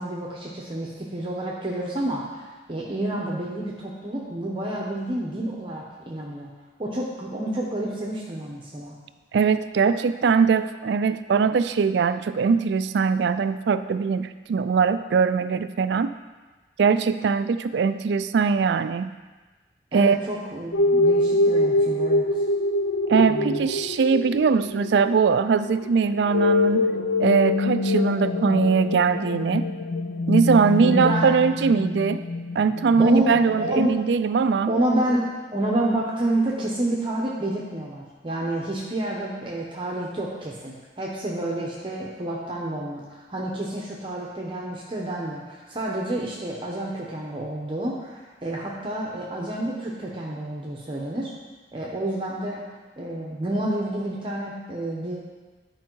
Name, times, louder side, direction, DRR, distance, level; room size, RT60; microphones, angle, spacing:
voice 1, 0.0-6.5 6.8-9.0 19.9-22.3 23.3-23.7 30.8-31.3 33.0-34.0 34.7-51.3 51.7-52.6 53.0-55.2, right 1 dB, 30° right, -3 dB, 0.8 m, -29 dB
voice 2, 9.3-16.1 16.8-19.1 19.9-20.2 23.1-26.9 27.2-29.7 30.3-32.2 32.5-34.7, right 5 dB, 65° right, 12 dB, 0.3 m, -21 dB
sound 1, 20.7-33.9, left 2 dB, 90° left, 0.5 m, -25 dB
10.5 x 4.6 x 4.6 m, 1.3 s
head